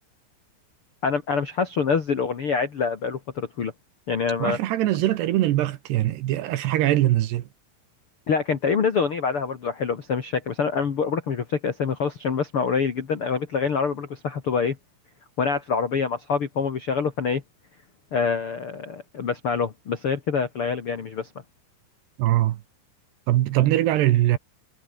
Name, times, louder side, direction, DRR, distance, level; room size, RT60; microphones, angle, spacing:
voice 1, 1.0-3.7 4.1-4.6 8.3-14.8 15.4-17.4 18.1-21.3, left 5 dB, 80° left, 1.2 m, -25 dB
voice 2, 4.4-7.4 22.2-22.6 23.3-24.4, right 14 dB, 70° right, 2.9 m, -22 dB
omnidirectional pair, 5.7 m